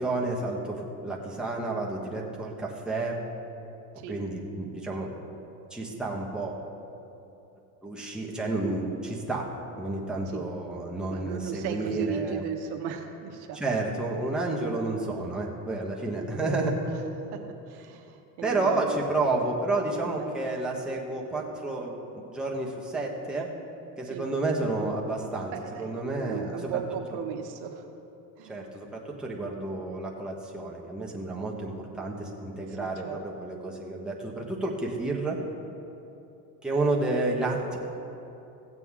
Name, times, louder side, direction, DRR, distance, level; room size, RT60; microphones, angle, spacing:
voice 1, 0.0-3.2 4.1-5.1 5.7-6.6 7.8-9.5 9.8-12.4 13.5-16.7 18.4-23.5 24.0-25.5 25.8-26.7 28.5-35.4 36.6-37.8, right 2 dB, ahead, -4 dB, 1.3 m, -30 dB
voice 2, 11.1-13.7 17.3-17.4 17.7-19.0 20.2-20.4 24.1-24.3 25.5-25.9 26.2-27.9 28.4-28.7 32.7-33.5, right 8 dB, 60° right, 4 dB, 1.1 m, -36 dB
16.0 x 7.9 x 3.7 m, 2.9 s
supercardioid pair, 115°, 45 cm